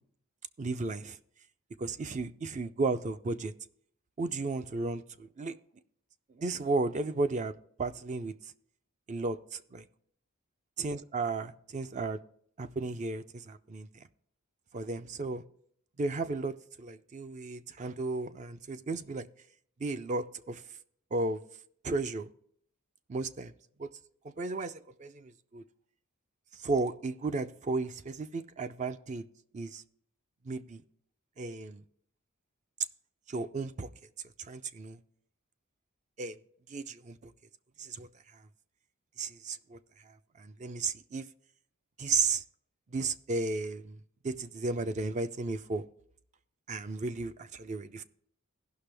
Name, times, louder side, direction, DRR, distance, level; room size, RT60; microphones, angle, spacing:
voice 1, 0.6-1.2 1.8-3.5 4.2-5.6 6.3-8.5 9.1-9.9 10.8-12.2 12.6-14.0 14.7-15.4 16.0-19.3 19.8-20.6 21.1-21.4 21.8-22.3 23.1-23.5 23.8-23.9 24.2-25.6 26.5-29.3 29.5-29.8 30.4-30.8 31.4-31.8 33.3-33.9 34.4-35.0 36.2-36.4 36.7-37.3 37.8-38.4 39.2-39.8 40.1-41.3 42.0-42.4 42.9-44.0 44.2-45.8 46.7-48.0, right 3 dB, 35° right, 0.4 m, -34 dB
16.0 x 5.9 x 3.3 m
head